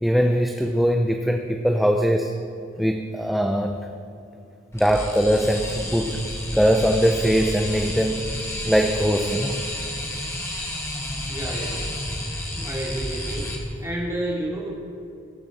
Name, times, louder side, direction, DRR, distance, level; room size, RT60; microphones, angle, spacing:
voice 1, 0.0-2.3 2.8-3.8 4.7-6.2 6.5-8.2 8.7-9.6, equal, ahead, 3 dB, 0.5 m, -21 dB
sound 1, 4.7-13.6, left 1 dB, 15° left, 1.6 m, -31 dB
voice 2, 11.3-12.3 12.5-13.6 13.8-14.7, right 1 dB, 15° right, -5 dB, 2.5 m, -30 dB
21.0 x 7.2 x 4.2 m, 2.6 s
head